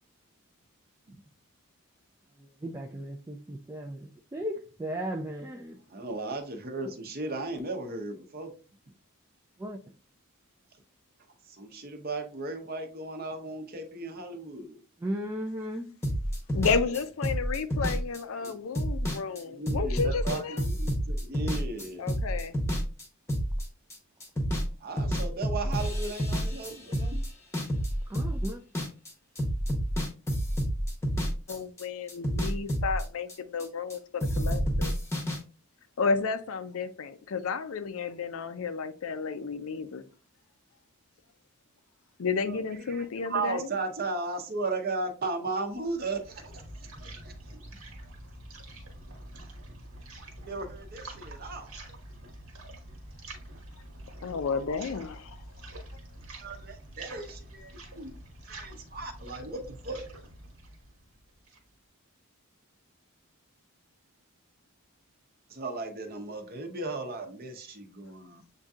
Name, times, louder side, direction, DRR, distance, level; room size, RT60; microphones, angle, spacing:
voice 1, 2.6-5.8 9.6-9.8 15.0-15.9 28.1-28.6, right 1 dB, 15° right, 0.3 m, -36 dB
voice 2, 5.9-8.5 11.5-14.8 18.4-18.6 19.4-22.0 24.8-27.2 42.5-42.6 42.9-46.6 47.0-47.3 47.7-47.8 50.4-51.8 56.4-58.1 58.5-60.1 65.5-68.4, right 3 dB, 45° right, 0.8 m, -36 dB
sound 1, 16.0-24.0 24.2-24.7 25.0-29.1 29.4-31.8 32.1-34.0 34.2-35.4, equal, 10° left, 0.8 m, -29 dB
voice 3, 16.5-20.7 22.0-22.6 31.5-34.9 36.0-40.0 42.2-43.7 54.2-55.4, left 5 dB, 65° left, 0.5 m, -32 dB
sound 2, 45.7-61.7, right 1 dB, 75° right, 1.2 m, -46 dB
7.4 x 2.7 x 2.4 m
head